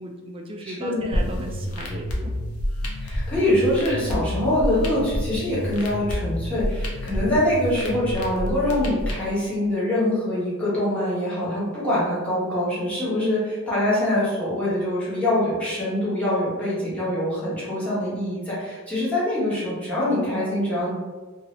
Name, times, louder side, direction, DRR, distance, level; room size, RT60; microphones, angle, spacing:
voice 1, 0.0-2.3, right 1 dB, 25° right, 2 dB, 0.3 m, -36 dB
voice 2, 0.6-1.0 3.0-20.9, left 1 dB, 5° left, -10 dB, 1.2 m, -24 dB
sound 1, 1.1-9.1, equal, 90° left, 0.6 m, -29 dB
2.7 x 2.6 x 3.1 m, 1.3 s
head